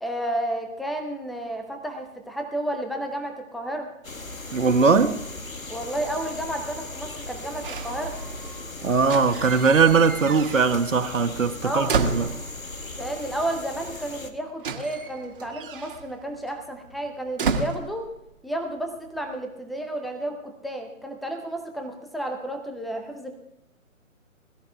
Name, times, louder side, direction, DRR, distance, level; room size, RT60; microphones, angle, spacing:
voice 1, 0.0-3.9 5.7-8.2 11.6-12.1 13.0-18.1 18.4-23.4, right 1 dB, ahead, 0.4 m, -32 dB
sound 1, 4.0-14.3, left 2 dB, 85° left, 2.3 m, -38 dB
voice 2, 4.5-5.2 8.8-12.3, right 5 dB, 70° right, 1.6 m, -20 dB
sound 2, 7.6-8.6 9.0-11.0 11.2-12.8 13.8-13.9 14.1-18.6 18.9-19.3, right 4 dB, 40° right, 1.8 m, -32 dB
21.5 x 13.5 x 3.4 m
figure-of-eight pair, 150°, 40 cm